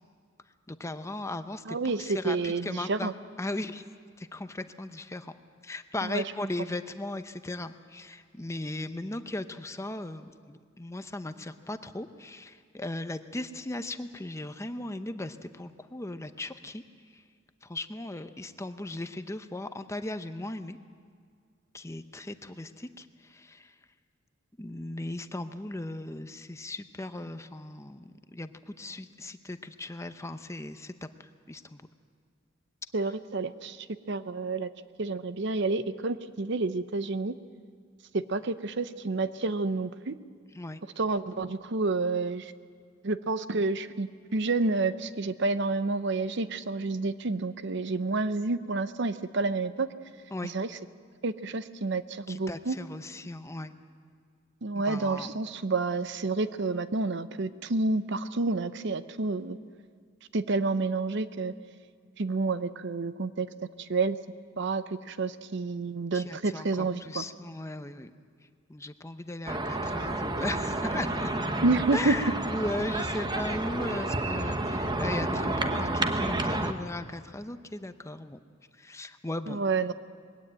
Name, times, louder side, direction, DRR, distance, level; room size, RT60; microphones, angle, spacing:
voice 1, 0.7-3.1 3.4-3.8 4.2-5.3 5.6-16.8 17.1-17.2 17.6-20.8 21.7-23.7 24.6-31.8 40.5-40.8 50.3-50.5 52.3-53.7 54.7-55.3 66.1-68.1 68.7-71.3 71.9-78.4 78.8-79.6, left 2 dB, 15° left, 10 dB, 0.7 m, -37 dB
voice 2, 1.7-3.1 6.0-6.2 32.9-34.7 35.0-37.3 38.1-40.1 41.0-42.5 43.0-49.9 50.4-50.7 51.2-52.8 54.6-59.6 60.3-61.5 62.2-63.5 63.8-64.2 64.6-67.2 71.6-72.2 79.5-79.9, right 3 dB, 60° right, 13 dB, 0.7 m, -29 dB
sound 1, 69.5-76.7, right 2 dB, 20° right, 1.1 m, -30 dB
21.5 x 17.0 x 9.0 m, 2.1 s
head